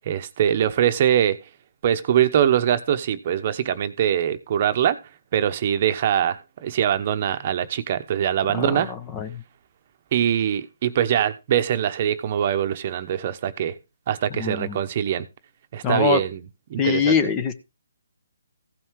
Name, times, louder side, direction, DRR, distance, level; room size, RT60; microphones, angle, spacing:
voice 1, 0.0-1.4 1.8-5.0 5.3-8.9 10.1-13.7 14.1-15.3 15.7-16.4 16.7-17.1, right 10 dB, 40° right, 1.0 m, -23 dB
voice 2, 8.5-9.4 14.3-14.8 15.8-16.2 16.8-17.5, left 6 dB, 20° left, 0.9 m, -23 dB
15.5 x 5.7 x 4.7 m
hypercardioid pair, 155°, 0 cm